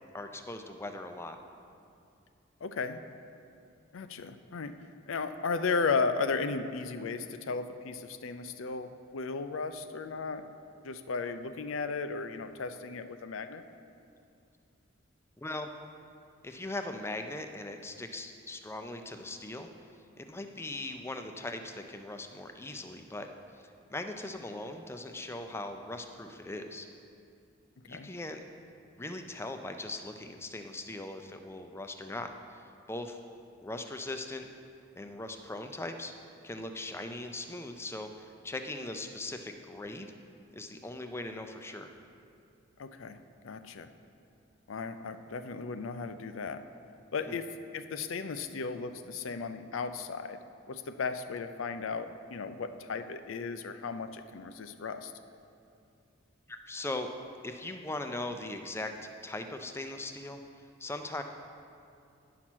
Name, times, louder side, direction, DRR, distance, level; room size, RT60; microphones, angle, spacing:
voice 1, 0.1-1.4 15.4-15.7 16.4-19.7 20.2-23.3 23.6-26.9 27.9-28.4 29.0-33.2 33.6-34.5 35.0-36.1 36.4-40.1 40.5-41.9 47.3-47.4 56.5-57.1 57.4-60.4 60.8-61.2, left 2 dB, 10° left, 6 dB, 0.4 m, -40 dB
voice 2, 2.6-3.0 3.9-4.7 5.1-10.4 10.8-13.6 27.9-28.1 42.8-43.9 44.7-46.6 47.1-50.4 50.7-55.1, left 4 dB, 70° left, 10 dB, 0.5 m, -35 dB
10.0 x 5.8 x 6.1 m, 2.5 s
head